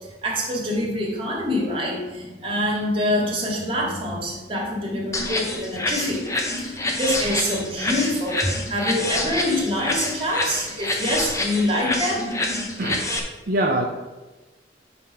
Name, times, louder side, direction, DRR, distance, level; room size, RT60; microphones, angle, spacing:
voice 1, 0.2-6.2 6.5-12.3, equal, 30° right, -3 dB, 2.3 m, -25 dB
sound 1, 1.4-12.8, left 1 dB, 60° left, 1.2 m, -40 dB
sound 2, 5.1-13.2, left 2 dB, 15° left, 0.9 m, -27 dB
voice 2, 6.6-6.9 11.9-12.2 12.8-13.2 13.5-13.8, right 1 dB, 55° right, 1 dB, 0.7 m, -26 dB
8.9 x 4.1 x 5.6 m, 1.2 s
head